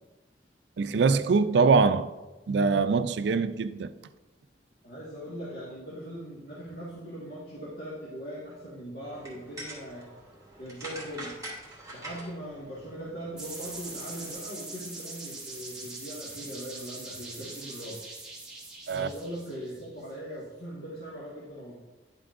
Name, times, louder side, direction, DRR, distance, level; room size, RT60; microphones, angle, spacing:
voice 1, 0.8-2.1 2.5-3.9 18.9-19.1, right 4 dB, 75° right, 0.4 m, -23 dB
voice 2, 4.8-10.1 10.6-11.4 11.9-18.0 18.9-21.7, equal, 65° left, 1.7 m, -40 dB
sound 1, 9.0-14.4, right 1 dB, 20° right, 2.8 m, -45 dB
sound 2, 13.4-20.1, right 2 dB, 5° right, 2.2 m, -42 dB
10.5 x 7.6 x 2.5 m
head